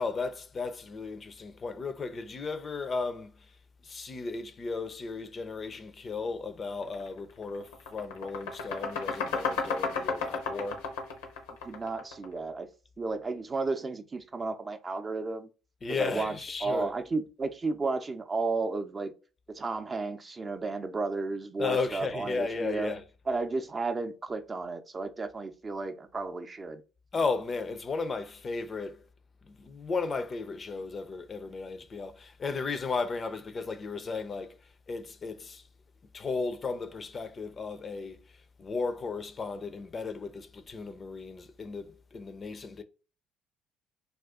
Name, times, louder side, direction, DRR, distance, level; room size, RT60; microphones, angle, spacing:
voice 1, 0.0-3.6 3.8-10.9 15.8-16.9 21.6-23.0 27.1-29.1 29.4-35.7 36.1-42.8, left 4 dB, 40° left, 0.4 m, -35 dB
sound 1, 6.9-7.1 7.4-12.4, left 4 dB, 85° left, 0.7 m, -33 dB
voice 2, 11.6-12.7 13.0-15.5 15.9-19.1 19.5-22.9 23.3-26.8, right 3 dB, 35° right, 0.5 m, -33 dB
2.4 x 2.3 x 3.6 m
hypercardioid pair, 60°, 0 cm